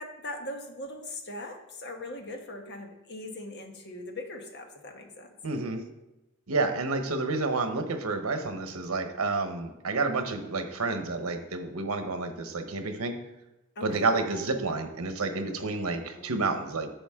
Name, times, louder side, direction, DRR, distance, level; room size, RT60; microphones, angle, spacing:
voice 1, 0.0-5.3 13.8-14.1 15.9-16.7, left 1 dB, 50° left, 4 dB, 1.2 m, -41 dB
voice 2, 5.4-5.8 6.5-13.2 13.8-16.9, right 3 dB, 90° right, 7 dB, 1.1 m, -30 dB
10.0 x 7.0 x 3.7 m, 0.93 s
head